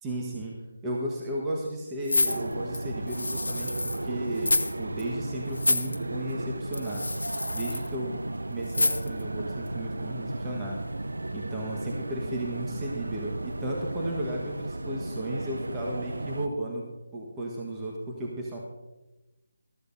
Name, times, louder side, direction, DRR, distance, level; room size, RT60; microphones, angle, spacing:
voice 1, 0.0-0.5 0.8-7.0 7.5-8.1 8.5-10.8 11.3-16.8 17.1-18.6, right 1 dB, 15° right, -3 dB, 1.3 m, -34 dB
sound 1, 2.0-4.0 4.4-4.7 5.0-5.1 5.5-6.0 6.7-7.9 8.7-9.2 9.7-9.8, left 2 dB, 80° left, 0.9 m, -28 dB
sound 2, 2.3-16.5, right 2 dB, 75° right, 0.7 m, -35 dB
15.0 x 13.0 x 2.7 m, 1.1 s
figure-of-eight pair, 155°, 0 cm